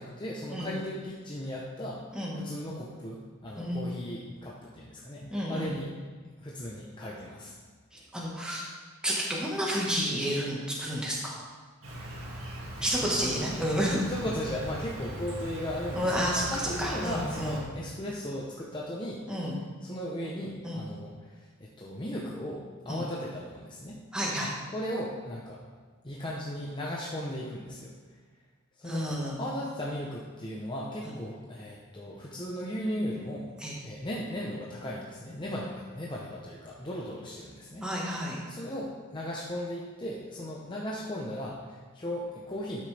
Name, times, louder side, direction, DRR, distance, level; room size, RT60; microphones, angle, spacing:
voice 1, 0.0-2.0 2.3-5.9 6.4-7.6 7.9-8.0 12.0-12.1 12.8-13.3 14.1-19.2 19.8-24.0 24.7-25.6 26.0-28.0 28.8-33.5 33.8-37.9 38.5-42.8, equal, 20° left, -4 dB, 0.8 m, -37 dB
voice 2, 5.3-5.7 8.1-8.6 9.0-11.4 12.8-14.0 16.0-16.4 16.8-17.6 19.3-19.5 20.6-20.8 22.9-23.0 24.1-24.5 28.8-29.4 33.6-33.7 37.8-38.4, equal, 5° right, -5 dB, 1.5 m, -30 dB
Insect, 11.8-17.6, equal, 70° right, 2.0 m, -40 dB
12.0 x 6.4 x 3.4 m, 1.4 s
head